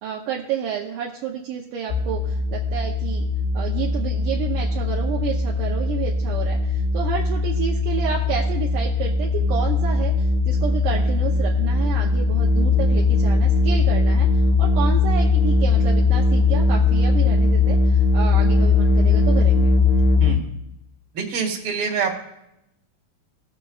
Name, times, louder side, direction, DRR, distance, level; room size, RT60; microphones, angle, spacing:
voice 1, 0.0-3.2 3.5-14.3 14.6-19.7, right 8 dB, 75° right, -1 dB, 2.1 m, -30 dB
sound 1, 1.9-20.3, left 3 dB, 70° left, 1.8 m, -19 dB
voice 2, 21.1-22.2, right 5 dB, 45° right, -2 dB, 2.1 m, -25 dB
19.5 x 7.1 x 2.3 m, 0.85 s
omnidirectional pair, 4.1 m